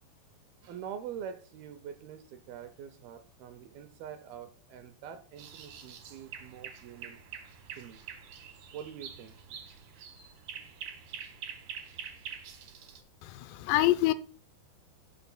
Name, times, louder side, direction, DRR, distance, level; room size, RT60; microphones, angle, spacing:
voice 1, 0.6-7.2 7.7-8.0 8.7-9.6, right 8 dB, 80° right, 2.3 m, -45 dB
sound 1, 5.4-13.0, right 7 dB, 65° right, 2.5 m, -46 dB
voice 2, 13.2-14.1, left 16 dB, 90° left, 2.8 m, -26 dB
16.0 x 6.9 x 2.2 m
omnidirectional pair, 4.9 m